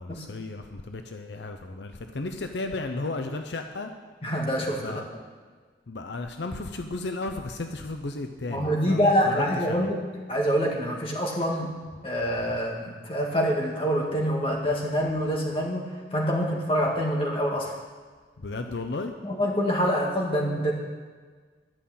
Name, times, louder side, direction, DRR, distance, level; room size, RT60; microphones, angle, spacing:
voice 1, 0.0-3.9 4.8-5.1 5.9-9.9 12.4-12.6 18.4-19.1, left 2 dB, 80° left, 6 dB, 0.7 m, -34 dB
voice 2, 4.2-5.0 8.5-17.7 19.2-20.7, equal, 30° left, -1 dB, 1.8 m, -26 dB
11.5 x 5.7 x 8.6 m, 1.5 s
head